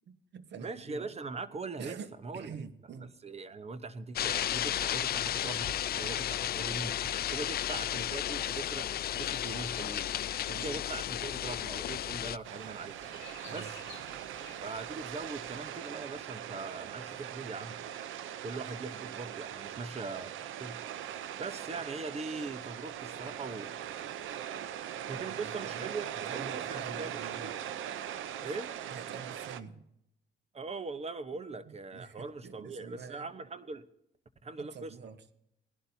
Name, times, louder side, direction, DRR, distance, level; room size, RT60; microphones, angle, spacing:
voice 1, 0.1-1.1 1.8-3.2 10.5-10.8 13.4-13.7 25.1-26.0 26.3-27.5 28.4-28.5 28.8-29.8 31.3-33.3 34.6-35.2, right 6 dB, 60° right, 11 dB, 1.2 m, -47 dB
voice 2, 0.6-1.9 2.2-2.6 3.2-7.0 7.3-10.1 10.5-13.1 13.5-13.8 14.6-17.8 18.4-20.8 21.4-23.7 25.1-27.6 28.4-28.7 30.5-33.8 34.4-35.1, right 3 dB, 30° right, 13 dB, 0.9 m, -41 dB
sound 1, 4.2-12.4, left 11 dB, 50° left, 0.4 m, -33 dB
sound 2, 5.4-15.7, left 10 dB, 70° left, 1.0 m, -52 dB
sound 3, 12.4-29.6, right 10 dB, 80° right, 0.7 m, -41 dB
19.0 x 11.5 x 2.8 m, 0.80 s
cardioid pair, 90°, 20 cm